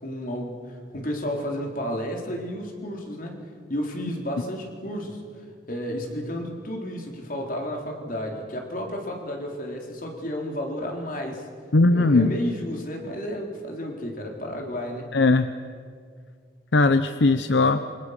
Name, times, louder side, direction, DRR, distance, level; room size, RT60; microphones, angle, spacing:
voice 1, 0.0-3.4 3.7-5.2 5.7-11.5 11.9-15.2, equal, 45° left, 1 dB, 3.8 m, -32 dB
voice 2, 11.7-12.3 15.1-15.5 16.7-17.8, left 3 dB, 70° left, 11 dB, 0.8 m, -19 dB
28.0 x 25.5 x 6.7 m, 2.1 s
head